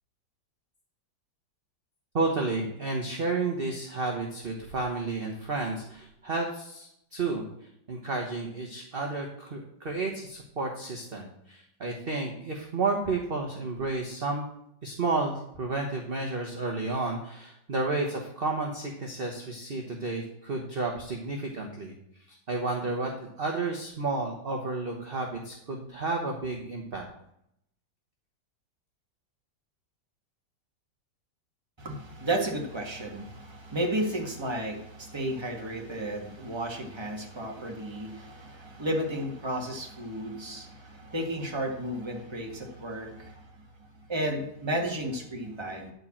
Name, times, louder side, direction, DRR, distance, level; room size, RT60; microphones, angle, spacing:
voice 1, 2.1-7.4 7.9-14.5 14.8-21.9 22.3-27.1, right 3 dB, 35° right, 1 dB, 1.3 m, -31 dB
voice 2, 31.8-43.4 44.1-45.9, right 1 dB, 15° right, 1 dB, 1.6 m, -33 dB
11.0 x 4.8 x 7.3 m, 0.75 s
omnidirectional pair, 1.9 m